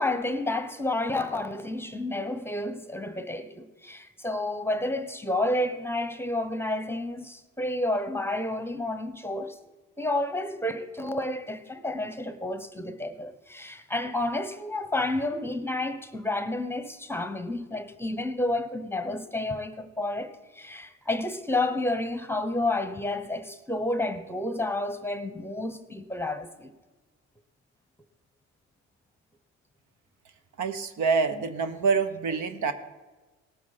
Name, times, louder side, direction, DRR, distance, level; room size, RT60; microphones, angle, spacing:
voice 1, 0.0-9.6 10.0-26.7, left 2 dB, 5° left, 1.0 m, -30 dB
voice 2, 30.6-32.7, right 5 dB, 60° right, 1.1 m, -26 dB
18.0 x 8.4 x 4.2 m
supercardioid pair, 65°, 33 cm